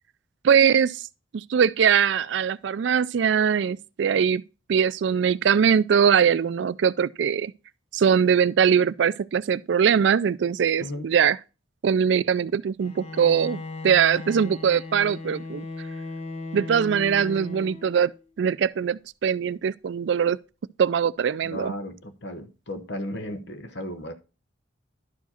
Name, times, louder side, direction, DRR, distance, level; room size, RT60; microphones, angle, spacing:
voice 1, 0.4-1.0 1.3-4.4 4.7-7.5 7.9-11.4 11.8-15.6 16.5-18.1 18.4-20.4 20.8-21.7, right 7 dB, 65° right, 0.3 m, -21 dB
voice 2, 10.8-11.1 21.4-24.1, left 1 dB, 60° left, 1.0 m, -35 dB
Bowed string instrument, 12.8-18.2, left 3 dB, 35° left, 0.9 m, -37 dB
11.5 x 4.7 x 4.3 m
head